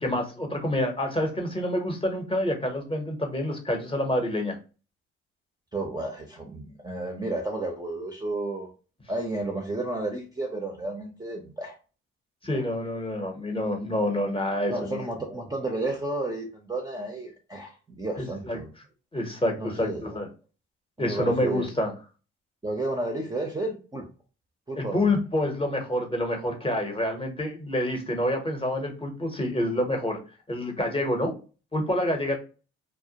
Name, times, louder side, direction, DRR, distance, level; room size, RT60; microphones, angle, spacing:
voice 1, 0.0-4.6 12.4-15.0 18.2-18.6 19.1-20.3 21.0-21.9 24.8-30.2 30.5-31.3 31.7-32.4, left 1 dB, 20° left, 3 dB, 0.8 m, -27 dB
voice 2, 5.7-8.7 9.1-11.8 12.5-12.6 14.7-18.7 19.6-20.0 21.0-21.7 22.6-24.0 24.7-25.1, right 2 dB, 15° right, 1 dB, 0.6 m, -32 dB
2.1 x 2.1 x 2.7 m, 0.34 s
supercardioid pair, 65°, 29 cm